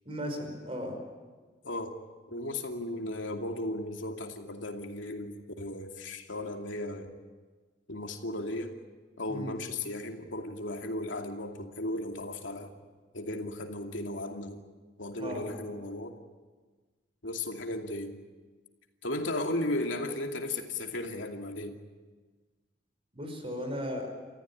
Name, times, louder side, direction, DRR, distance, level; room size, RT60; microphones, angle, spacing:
voice 1, 0.1-1.0 9.3-9.5 15.2-15.6 23.1-24.1, equal, 30° right, 4 dB, 5.4 m, -36 dB
voice 2, 1.6-1.9 2.3-7.1 7.9-8.7 9.2-12.7 13.1-14.6 15.0-16.1 17.2-18.2 19.0-21.7, left 1 dB, 90° left, 3 dB, 2.6 m, -35 dB
28.5 x 14.5 x 9.8 m, 1.4 s
head